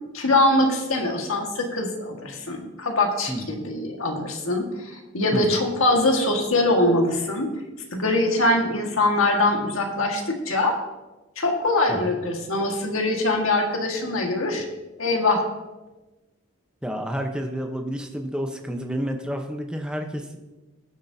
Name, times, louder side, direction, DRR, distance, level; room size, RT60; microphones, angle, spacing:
voice 1, 0.1-7.5 7.9-10.8 11.4-14.7 15.0-15.4, left 2 dB, 75° left, 2 dB, 1.7 m, -23 dB
voice 2, 5.3-5.6 11.9-12.1 16.8-20.4, equal, 5° right, 4 dB, 0.9 m, -30 dB
20.0 x 7.5 x 2.8 m, 1.1 s
head